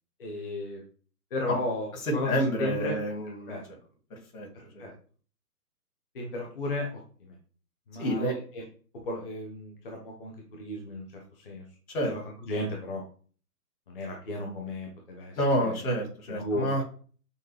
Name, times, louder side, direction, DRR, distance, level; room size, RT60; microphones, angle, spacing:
voice 1, 0.2-0.8 1.3-2.3 2.6-3.0 3.5-3.6 4.5-4.9 6.1-7.0 7.3-7.4 7.9-8.4 9.0-11.0 11.4-11.6 12.1-12.2 12.5-13.0 13.9-15.3 15.6-15.7 16.3-16.7, left 1 dB, 35° left, 0 dB, 0.8 m, -34 dB
voice 2, 1.9-3.8 4.1-4.5 4.7-4.9 8.0-8.4 11.9-12.1 15.4-16.8, equal, 60° left, 1 dB, 1.9 m, -29 dB
6.4 x 2.2 x 3.2 m, 0.42 s
hypercardioid pair, 160°, 48 cm